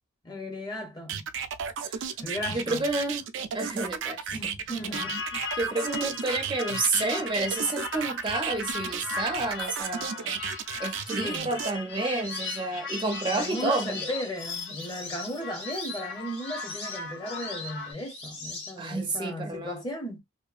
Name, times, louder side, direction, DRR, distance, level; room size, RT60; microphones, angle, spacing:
voice 1, 0.2-1.3 2.2-2.8 4.3-5.2 11.1-11.5 13.3-20.2, left 1 dB, 20° left, 0.7 m, -36 dB
sound 1, 1.1-11.7, right 7 dB, 85° right, 0.4 m, -33 dB
voice 2, 2.5-3.3 3.5-4.3 5.6-10.4 10.8-14.1 18.8-19.8, right 3 dB, 25° right, 0.4 m, -30 dB
sound 2, 4.9-17.9, left 4 dB, 80° left, 0.7 m, -38 dB
sound 3, 12.2-19.1, left 3 dB, 65° left, 1.1 m, -40 dB
2.7 x 2.2 x 2.4 m
head